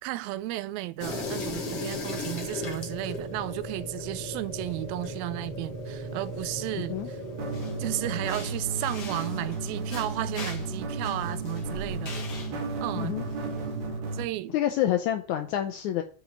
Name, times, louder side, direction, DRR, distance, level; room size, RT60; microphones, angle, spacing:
voice 1, 0.0-7.2 7.8-12.2 12.8-13.1 14.1-14.6, right 16 dB, 85° right, 2.4 m, -33 dB
sound 1, 1.0-13.9, left 1 dB, 50° left, 2.5 m, -39 dB
sound 2, 1.2-8.5, left 1 dB, 25° left, 1.3 m, -40 dB
voice 2, 6.7-7.1 13.0-13.2 14.5-16.0, left 12 dB, 80° left, 1.7 m, -28 dB
sound 3, 7.4-14.2, right 3 dB, 60° right, 2.3 m, -33 dB
8.5 x 5.1 x 7.2 m
omnidirectional pair, 4.2 m